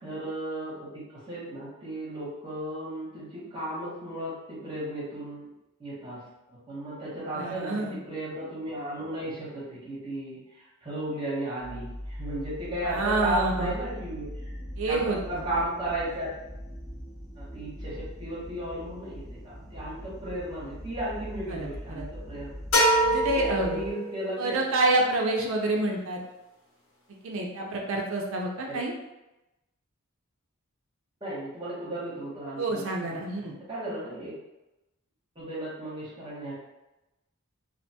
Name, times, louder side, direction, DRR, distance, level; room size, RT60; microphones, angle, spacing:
voice 1, 0.0-5.5 5.8-14.5 14.8-16.3 17.4-22.6 23.6-24.7 28.7-28.8 31.2-32.8 33.1-33.2 33.7-34.3 35.3-36.5, right 1 dB, 20° right, -9 dB, 0.8 m, -35 dB
voice 2, 7.3-8.0 12.8-13.7 14.8-15.4 21.5-22.1 23.0-23.8 24.4-26.2 27.2-28.9 32.6-33.6, right 2 dB, 65° right, 0 dB, 0.4 m, -28 dB
sound 1, 11.6-23.9, equal, ahead, 0.3 m, -40 dB
sound 2, 22.7-24.5, equal, 60° left, 0.9 m, -24 dB
2.5 x 2.2 x 2.7 m, 0.97 s
head